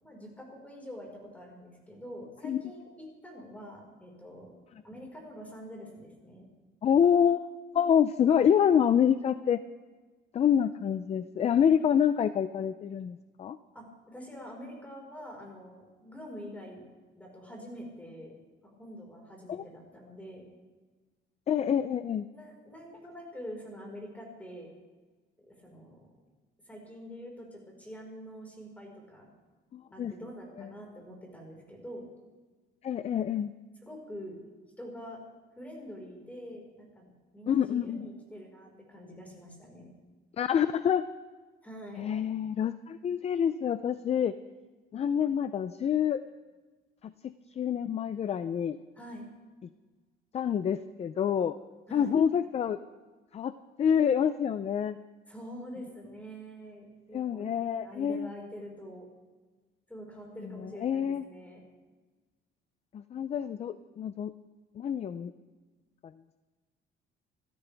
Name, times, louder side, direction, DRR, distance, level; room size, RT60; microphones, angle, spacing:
voice 1, 0.0-4.5 4.8-6.5 13.7-16.8 17.2-18.3 18.8-20.4 22.3-24.7 25.5-26.1 26.7-29.3 29.9-32.0 33.8-34.4 34.8-35.2 35.6-39.9 41.6-42.1 48.9-49.2 51.9-52.1 55.3-57.5 57.8-59.1 59.9-61.6, equal, 5° left, 0 dB, 4.7 m, -45 dB
voice 2, 6.8-7.5 7.7-9.6 10.3-13.6 19.5-19.6 21.5-22.3 29.7-30.1 30.6-30.7 32.8-33.5 37.5-38.1 40.4-41.0 42.0-44.4 44.9-46.2 47.0-48.8 50.3-51.5 51.9-52.8 53.3-53.5 53.8-55.0 57.1-58.3 60.6-61.2 62.9-64.3 64.8-65.3, left 8 dB, 30° left, 13 dB, 0.4 m, -27 dB
27.0 x 13.5 x 3.4 m, 1.3 s
cardioid pair, 155°, 21 cm